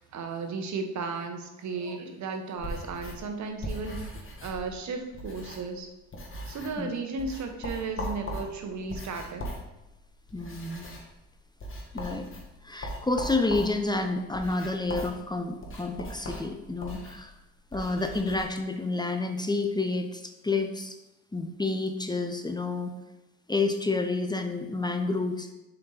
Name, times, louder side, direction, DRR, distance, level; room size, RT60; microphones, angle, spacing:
voice 1, 0.0-4.1 4.4-5.9 6.5-9.4, right 4 dB, 60° right, 5 dB, 1.1 m, -34 dB
sound 1, 2.6-5.8 6.1-6.9 7.2-18.4, left 1 dB, 40° left, 1.9 m, -40 dB
voice 2, 10.3-10.9 11.9-12.3 12.6-17.3 17.7-21.0 21.3-22.9 23.5-25.5, left 3 dB, 15° left, 5 dB, 0.7 m, -29 dB
7.1 x 4.6 x 3.9 m, 0.99 s
hypercardioid pair, 50°, 33 cm